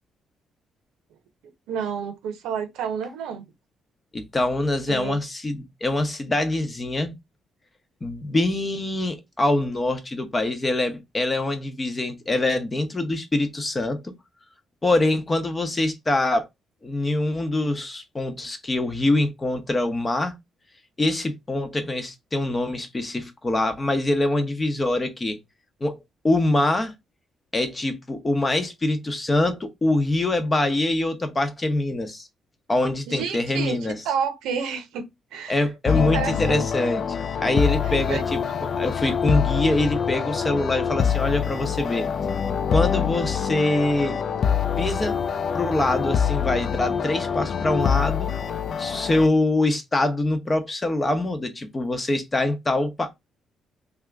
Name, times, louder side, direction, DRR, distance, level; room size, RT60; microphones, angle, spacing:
voice 1, 1.7-3.5 4.9-5.2 33.1-33.8 34.0-35.7 35.9-36.6 37.8-38.2, right 7 dB, 90° right, 0.7 m, -30 dB
voice 2, 4.1-7.1 8.0-14.1 14.8-16.5 16.8-20.3 21.0-25.4 25.8-26.0 26.2-26.9 27.5-32.3 32.7-34.0 35.5-37.0 37.4-42.1 42.7-44.2 44.8-45.2 45.5-48.3 48.8-53.1, left 2 dB, 25° left, 0.8 m, -24 dB
sound 1, 35.9-49.3, left 7 dB, 55° left, 0.3 m, -25 dB
2.7 x 2.4 x 3.4 m
cardioid pair, 90°, 0 cm